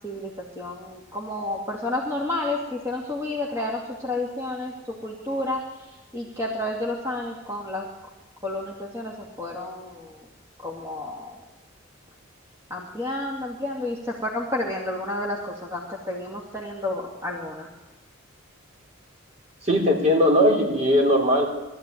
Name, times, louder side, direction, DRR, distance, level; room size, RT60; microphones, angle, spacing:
voice 1, 0.6-7.9 8.4-10.3 10.6-11.4 12.7-17.7, left 1 dB, 15° right, -3 dB, 2.4 m, -31 dB
voice 2, 19.6-21.5, equal, 35° right, 0 dB, 3.5 m, -19 dB
20.5 x 14.0 x 9.2 m, 1.1 s
head